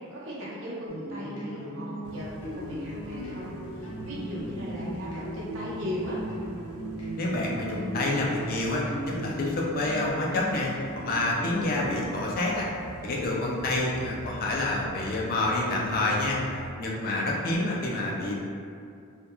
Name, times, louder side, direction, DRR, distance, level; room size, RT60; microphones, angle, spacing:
voice 1, 0.1-6.2, equal, 60° right, -8 dB, 0.7 m, -37 dB
sound 1, 0.9-11.6, equal, 85° left, 0.7 m, -37 dB
sound 2, 2.0-16.7, right 1 dB, 80° right, 0.3 m, -45 dB
voice 2, 7.2-12.7 13.0-16.4 16.8-18.4, left 2 dB, 40° left, -2 dB, 0.3 m, -28 dB
2.9 x 2.2 x 2.2 m, 2.4 s
head